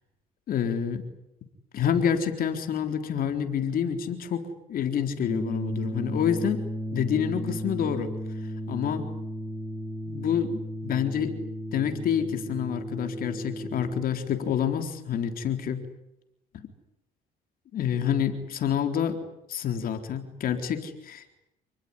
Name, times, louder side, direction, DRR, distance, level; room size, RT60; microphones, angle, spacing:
voice 1, 0.5-1.0 1.7-4.4 4.7-6.6 6.9-8.1 8.7-9.1 10.1-11.3 11.7-15.8 16.5-16.7 17.7-19.2 19.5-21.4, left 8 dB, 60° left, 6 dB, 4.0 m, -28 dB
sound 1, 5.3-14.0, equal, 15° right, 4.1 m, -34 dB
29.0 x 20.0 x 9.9 m, 0.89 s
cardioid pair, 110°, 17 cm